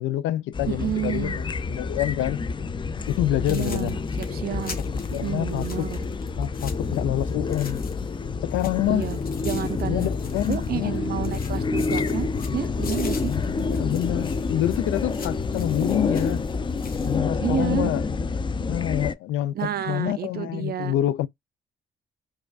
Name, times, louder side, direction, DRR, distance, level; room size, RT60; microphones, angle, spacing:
voice 1, 0.0-2.4 3.1-3.9 4.8-5.9 6.4-7.8 8.4-9.1 9.9-11.0 13.3-16.4 17.0-18.0 18.7-21.3, left 13 dB, 85° left, 0.4 m, -27 dB
sound 1, 0.5-19.1, left 4 dB, 25° left, 0.4 m, -28 dB
voice 2, 0.7-1.4 3.5-4.8 5.2-6.0 8.9-10.1 10.5-13.3 15.8-15.9 17.4-17.9 19.5-20.9, right 10 dB, 50° right, 0.4 m, -30 dB
sound 2, 3.0-3.2 3.5-8.2 8.5-11.0 11.2-17.2, left 5 dB, 50° left, 1.2 m, -44 dB
4.8 x 2.3 x 2.3 m
cardioid pair, 90°, 20 cm